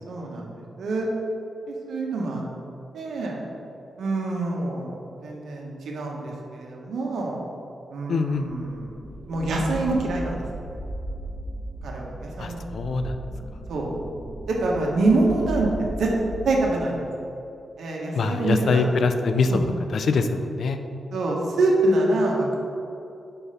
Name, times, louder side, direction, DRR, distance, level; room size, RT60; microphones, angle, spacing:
voice 1, 0.1-1.1 1.7-2.4 2.9-3.4 4.0-7.4 7.9-10.4 11.8-12.7 13.7-13.9 14.5-16.1 16.4-17.1 17.8-18.8 19.5-19.6 21.1-22.6, right 2 dB, 90° right, -2 dB, 1.1 m, -25 dB
voice 2, 8.1-8.5 12.4-13.1 18.1-19.5 19.9-20.8, left 4 dB, 65° left, 8 dB, 0.4 m, -23 dB
sound 1, 8.6-16.6, right 1 dB, 25° right, 0.6 m, -36 dB
5.0 x 4.6 x 5.6 m, 2.8 s
wide cardioid pair, 125°, 0 cm